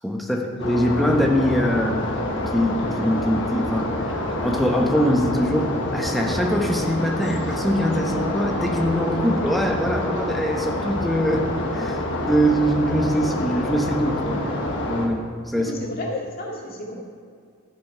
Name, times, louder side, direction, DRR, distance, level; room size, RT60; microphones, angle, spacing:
voice 1, 0.0-14.4 14.9-15.7, equal, ahead, 1 dB, 1.0 m, -23 dB
sound 1, 0.6-15.1, left 1 dB, 60° left, 1.5 m, -27 dB
voice 2, 15.6-17.0, left 1 dB, 45° left, -2 dB, 2.1 m, -32 dB
13.5 x 7.6 x 4.6 m, 2.2 s
head